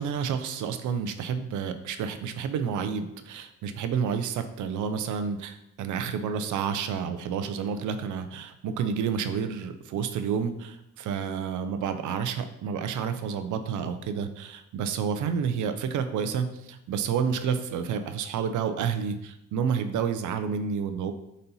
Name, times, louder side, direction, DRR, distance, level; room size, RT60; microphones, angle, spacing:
voice 1, 0.0-21.1, right 7 dB, 75° right, 9 dB, 0.7 m, -30 dB
4.2 x 4.0 x 5.5 m, 0.85 s
cardioid pair, 90°, 30 cm